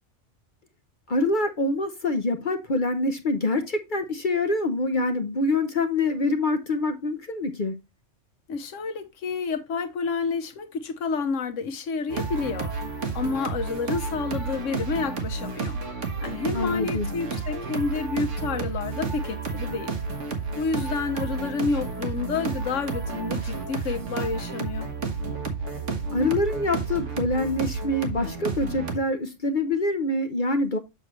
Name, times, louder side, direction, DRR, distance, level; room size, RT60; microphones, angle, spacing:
voice 1, 1.1-7.8 16.5-17.1 26.1-30.8, left 2 dB, 45° left, 0.9 m, -25 dB
voice 2, 8.5-15.8 16.2-20.0 20.6-24.9, left 4 dB, 85° left, 1.2 m, -29 dB
sound 1, 12.1-29.0, right 4 dB, 75° right, 1.6 m, -31 dB
7.5 x 6.4 x 3.0 m
omnidirectional pair, 1.3 m